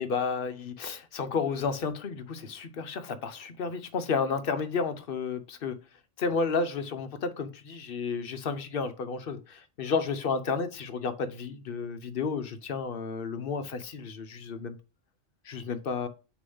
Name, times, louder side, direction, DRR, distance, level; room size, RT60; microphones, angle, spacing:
voice 1, 0.0-5.7 6.2-14.8 15.5-16.1, left 5 dB, 55° left, 0.8 m, -32 dB
6.7 x 3.0 x 5.4 m
omnidirectional pair, 1.3 m